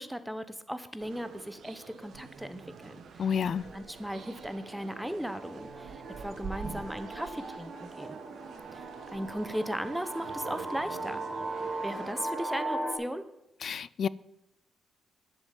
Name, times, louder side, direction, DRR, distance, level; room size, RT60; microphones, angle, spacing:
voice 1, 0.0-3.3 3.7-8.2 8.7-11.2 11.8-13.2, equal, 5° right, 0.9 m, -37 dB
sound 1, 1.0-12.1, right 6 dB, 70° right, 1.2 m, -46 dB
voice 2, 3.2-3.6 13.6-14.1, left 7 dB, 60° left, 0.4 m, -29 dB
sound 2, 3.9-12.9, right 2 dB, 35° right, 3.0 m, -39 dB
10.5 x 7.7 x 7.4 m
cardioid pair, 95°, 0 cm